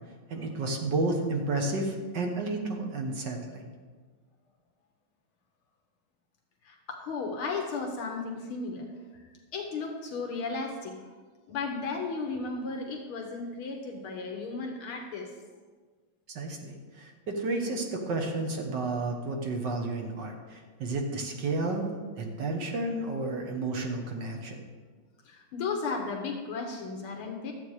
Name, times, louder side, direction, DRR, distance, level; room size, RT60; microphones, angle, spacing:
voice 1, 0.3-3.6 16.4-21.9 22.2-24.6, right 2 dB, 60° right, 2 dB, 1.7 m, -31 dB
voice 2, 6.6-11.0 11.5-15.3 25.3-27.5, left 4 dB, 75° left, 2 dB, 1.9 m, -35 dB
12.0 x 8.1 x 4.8 m, 1.5 s
omnidirectional pair, 2.4 m